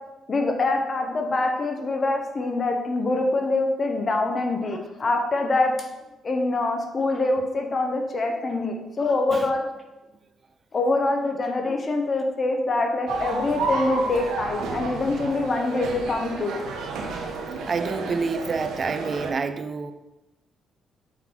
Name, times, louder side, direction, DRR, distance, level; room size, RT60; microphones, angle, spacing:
voice 1, 0.3-5.7 6.2-9.7 10.7-16.5, left 2 dB, 40° left, 4 dB, 1.0 m, -24 dB
sound 1, 13.1-19.3, right 3 dB, 85° right, 0.9 m, -31 dB
voice 2, 17.7-19.9, right 4 dB, 40° right, 9 dB, 0.5 m, -28 dB
5.7 x 4.0 x 4.6 m, 1.0 s
cardioid pair, 90°, 0 cm